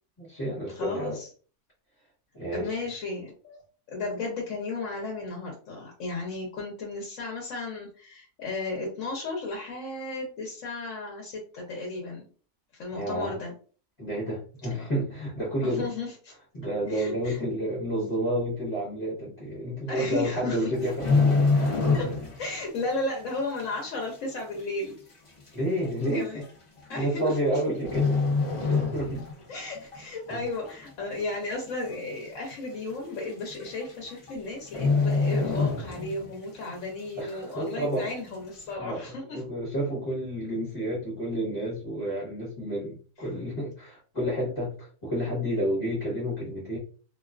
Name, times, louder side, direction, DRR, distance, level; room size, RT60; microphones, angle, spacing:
voice 1, 0.2-1.2 2.3-2.9 12.9-13.4 14.0-15.9 16.5-22.0 25.5-26.4 26.9-28.2 28.6-29.2 30.3-30.4 37.2-38.1 38.8-46.8, right 1 dB, 25° left, -7 dB, 0.9 m, -30 dB
voice 2, 0.7-1.3 2.5-3.6 3.9-12.2 12.7-13.5 14.8-14.9 15.6-16.3 16.9-17.4 19.9-20.7 21.9-22.1 22.4-25.0 26.1-26.5 26.9-27.6 29.5-39.4, left 2 dB, 70° left, -1 dB, 1.0 m, -34 dB
sound 1, 20.7-22.5 22.8-23.0 23.6-23.7 24.6-24.7 24.9-25.0 25.8-26.1 27.2-27.6 27.8-29.4 29.8-30.0 30.5-31.0 31.3-31.4 31.7-31.8 32.2-32.3 33.2-33.3 33.6-33.9 34.2-34.3 34.7-36.3 36.7-36.8, left 4 dB, 45° left, 0.4 m, -25 dB
2.4 x 2.3 x 2.3 m, 0.40 s
omnidirectional pair, 1.5 m